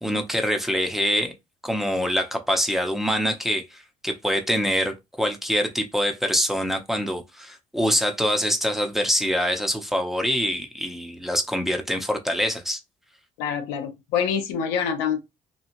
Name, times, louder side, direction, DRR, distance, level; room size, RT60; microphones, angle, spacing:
voice 1, 0.0-1.3 1.6-12.8, equal, ahead, 0.7 m, -25 dB
voice 2, 13.4-15.2, left 7 dB, 85° left, 0.5 m, -26 dB
3.0 x 2.3 x 2.6 m
supercardioid pair, 65°, 17 cm